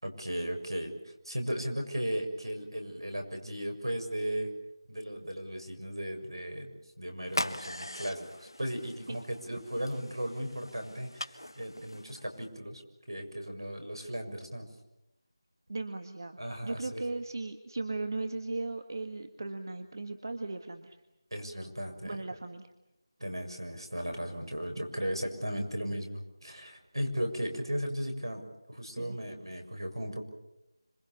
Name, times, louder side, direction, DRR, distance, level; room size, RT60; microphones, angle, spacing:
voice 1, 0.0-4.5 4.9-6.7 7.0-12.8 13.1-14.7 16.4-17.0 21.3-22.2 23.2-28.4 28.7-30.2, equal, 80° right, 4 dB, 6.8 m, -36 dB
sound 1, 7.3-12.5, left 1 dB, 80° left, 1.7 m, -41 dB
voice 2, 15.7-21.0 22.0-22.7 29.0-29.2, right 2 dB, 50° right, 7 dB, 1.7 m, -37 dB
26.5 x 25.5 x 7.1 m, 0.90 s
figure-of-eight pair, 165°, 2 cm